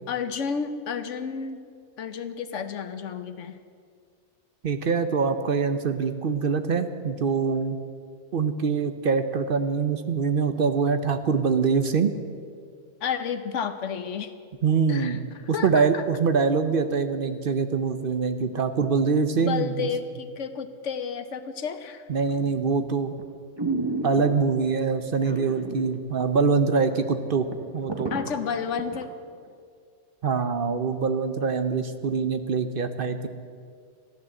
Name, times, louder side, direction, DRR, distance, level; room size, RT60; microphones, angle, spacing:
voice 1, 0.1-1.6 2.0-3.6 13.0-14.3 14.9-15.2 15.5-16.0 19.3-22.0 28.1-29.1, left 6 dB, 75° left, 9 dB, 1.2 m, -31 dB
voice 2, 4.6-7.8 8.3-12.1 14.6-19.9 22.1-23.2 24.0-27.5 27.7-28.1 30.2-33.3, right 5 dB, 55° right, 9 dB, 0.8 m, -24 dB
sound 1, 22.4-22.7 23.2-23.3 23.6-24.6 25.2-25.9 26.2-26.3 26.8-26.9 27.2-29.0 29.5-29.6, right 3 dB, 20° right, 1.1 m, -31 dB
14.0 x 11.0 x 7.6 m, 2.2 s
omnidirectional pair, 1.3 m